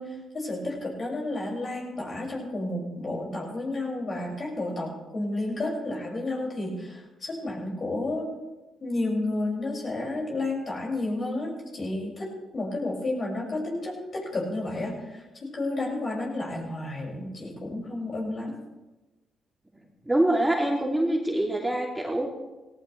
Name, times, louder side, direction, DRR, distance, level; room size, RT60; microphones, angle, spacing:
voice 1, 0.0-8.3 8.8-12.3 12.5-18.6, left 2 dB, 45° left, -2 dB, 6.4 m, -31 dB
voice 2, 20.0-22.3, right 1 dB, 10° right, -1 dB, 2.9 m, -25 dB
17.5 x 17.0 x 3.4 m, 1.1 s
hypercardioid pair, 45°, 0 cm